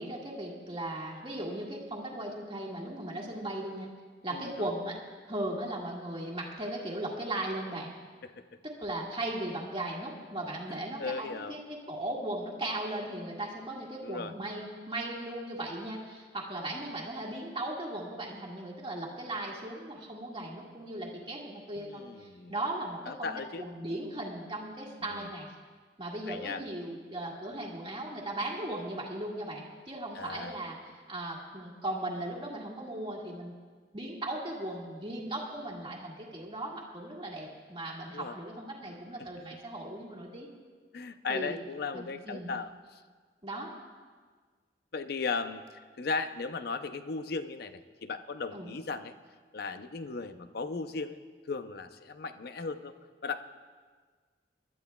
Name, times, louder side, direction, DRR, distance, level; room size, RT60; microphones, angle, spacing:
voice 1, 0.0-3.9 4.2-5.0 5.3-7.9 8.6-23.3 23.6-25.5 26.0-30.8 31.1-33.5 33.9-40.5 41.3-41.6 41.9-42.5 43.4-43.7 48.5-48.7, right 1 dB, 30° right, -3 dB, 1.8 m, -37 dB
voice 2, 4.3-4.7 8.2-8.4 11.0-11.6 14.0-14.3 21.8-22.5 23.1-23.6 25.1-25.3 26.3-26.6 30.1-30.5 38.1-38.4 40.9-43.0 44.9-45.6 46.0-49.1 49.5-51.2 51.5-52.9 53.2-53.4, left 4 dB, 60° left, 10 dB, 0.6 m, -36 dB
24.5 x 12.0 x 2.3 m, 1.5 s
head